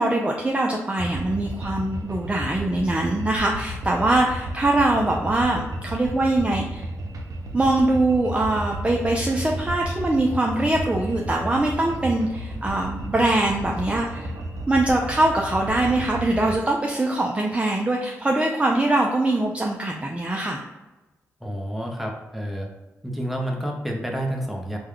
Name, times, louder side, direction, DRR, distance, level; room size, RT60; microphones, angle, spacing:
voice 1, 0.0-6.9 7.5-14.3 14.7-20.6, right 2 dB, 20° right, 0 dB, 0.4 m, -22 dB
sound 1, 1.0-16.6, right 1 dB, 70° right, 0.6 m, -33 dB
voice 2, 21.4-22.7 23.0-24.8, equal, ahead, 0 dB, 0.8 m, -29 dB
3.4 x 2.2 x 3.3 m, 1.1 s
cardioid pair, 55°, 6 cm